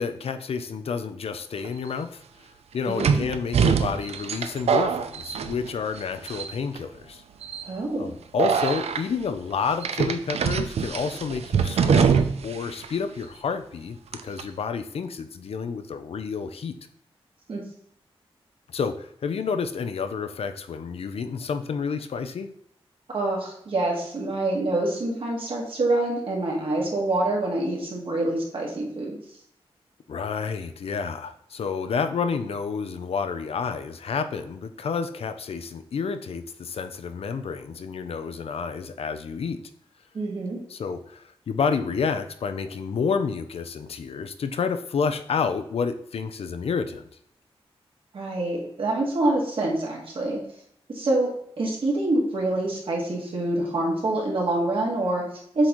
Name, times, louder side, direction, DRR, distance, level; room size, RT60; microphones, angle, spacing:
voice 1, 0.0-2.2 2.7-7.2 8.0-12.1 12.4-14.0 14.2-16.7 18.7-22.5 30.1-39.6 40.7-47.0, left 5 dB, 70° left, 9 dB, 0.6 m, -29 dB
sound 1, 1.6-1.7 3.0-6.0 6.3-6.8 7.4-7.7 8.4-9.0 9.8-12.6 12.8-12.9 14.1-14.4, right 6 dB, 90° right, 0.5 m, -23 dB
voice 2, 2.9-3.3 7.6-8.1 17.5-17.6 23.1-29.2 40.1-40.6 48.1-50.4 50.9-51.3 51.6-55.7, right 2 dB, 60° right, -2 dB, 1.9 m, -26 dB
7.7 x 4.0 x 3.1 m, 0.68 s
wide cardioid pair, 155°, 10 cm